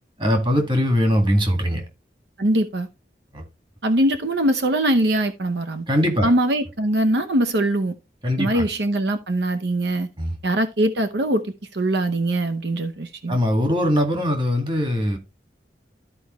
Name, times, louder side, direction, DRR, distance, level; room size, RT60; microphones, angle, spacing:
voice 1, 0.2-1.9 3.3-3.4 5.9-6.3 8.2-8.7 10.2-10.4 13.3-15.2, equal, 25° right, 1.8 m, -21 dB
voice 2, 2.4-2.9 3.8-5.9 6.2-7.9 8.4-10.1 10.4-11.5 11.7-13.4, right 1 dB, 75° right, 0.8 m, -22 dB
13.0 x 4.7 x 3.1 m
head